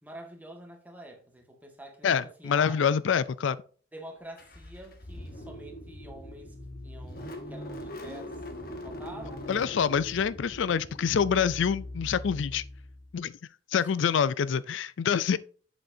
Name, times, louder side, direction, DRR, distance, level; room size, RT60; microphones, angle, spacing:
voice 1, 0.0-2.8 3.9-6.5 6.8-8.4 8.8-9.5 13.7-13.9, right 1 dB, 10° right, 1.5 m, -47 dB
voice 2, 2.0-3.6 9.5-12.6 13.1-13.3 13.7-15.4, left 7 dB, 75° left, 0.4 m, -26 dB
Car / Engine starting, 4.4-13.1, left 1 dB, 50° left, 1.3 m, -41 dB
8.0 x 7.6 x 2.7 m
head